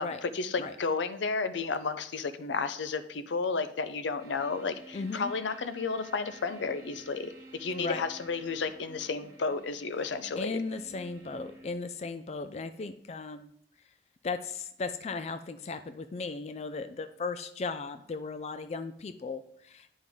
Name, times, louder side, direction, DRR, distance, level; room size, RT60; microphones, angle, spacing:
voice 1, 0.0-10.6, left 4 dB, 85° left, 11 dB, 0.6 m, -32 dB
sound 1, 4.2-11.7, right 2 dB, 20° right, 2.0 m, -52 dB
voice 2, 4.9-5.3 7.8-8.0 10.4-13.5 14.2-20.0, left 4 dB, 35° left, 10 dB, 0.3 m, -36 dB
9.3 x 5.3 x 3.6 m, 0.68 s
head